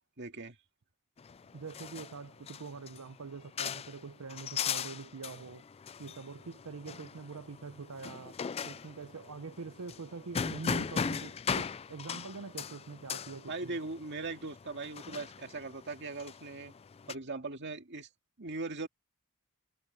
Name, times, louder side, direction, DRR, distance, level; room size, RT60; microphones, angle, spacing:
voice 1, 0.2-0.6 13.5-16.7 17.1-18.1 18.4-18.9, right 3 dB, 50° right, 2.1 m, -39 dB
sound 1, 1.2-17.1, left 6 dB, 25° left, 0.3 m, -39 dB
voice 2, 1.5-5.7 6.0-13.8, right 4 dB, 80° right, 0.7 m, -44 dB
head